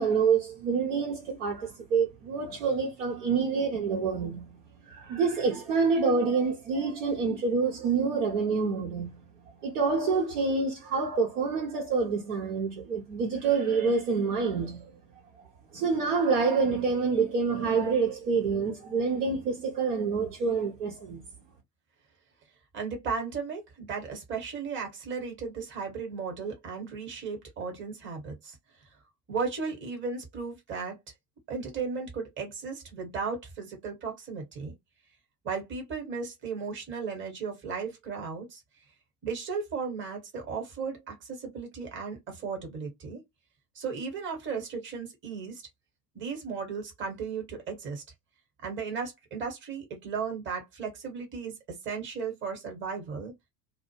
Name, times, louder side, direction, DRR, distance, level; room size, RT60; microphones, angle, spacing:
voice 1, 0.0-4.6 4.9-9.2 9.6-14.9 15.7-21.2, right 5 dB, 50° right, 0.8 m, -27 dB
voice 2, 22.7-28.6 29.3-31.0 31.5-34.7 35.4-38.6 39.2-43.2 43.7-45.6 46.1-48.0 48.6-51.5 51.8-53.3, right 5 dB, 25° right, 1.1 m, -35 dB
2.3 x 2.1 x 3.0 m
figure-of-eight pair, 80°, 49 cm